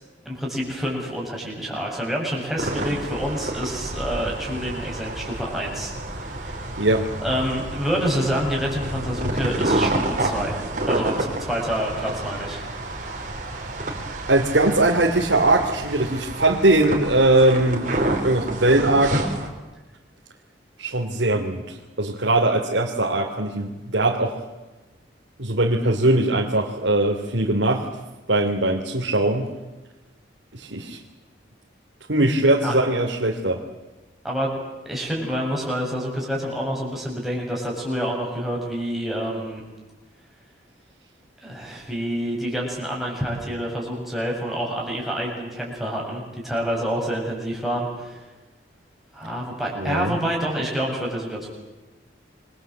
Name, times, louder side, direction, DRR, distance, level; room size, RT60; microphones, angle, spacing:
voice 1, 0.2-6.8 7.2-10.6 10.9-12.6 32.6-32.8 34.2-34.6 34.8-39.6 41.4-48.2 49.1-51.5, equal, ahead, -3 dB, 7.9 m, -27 dB
sound 1, 2.6-19.5, right 1 dB, 45° right, 4.5 m, -29 dB
voice 2, 14.3-17.9 18.2-19.2 20.8-24.4 25.4-27.9 28.3-29.5 30.5-31.0 32.1-33.6 49.8-50.2, right 2 dB, 85° right, -1 dB, 2.9 m, -20 dB
28.5 x 23.5 x 8.1 m, 1.1 s
head